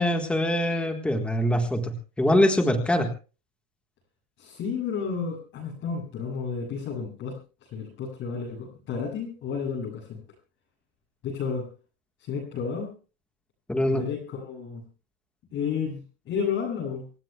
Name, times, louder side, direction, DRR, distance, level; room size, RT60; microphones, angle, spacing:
voice 1, 0.0-3.1 13.7-14.0, left 1 dB, 5° left, 4 dB, 1.4 m, -23 dB
voice 2, 4.4-10.2 11.2-11.7 12.3-12.9 13.8-14.8 15.5-17.0, left 6 dB, 30° left, -4 dB, 7.5 m, -32 dB
27.5 x 16.5 x 2.3 m, 0.35 s
cardioid pair, 180°, 37 cm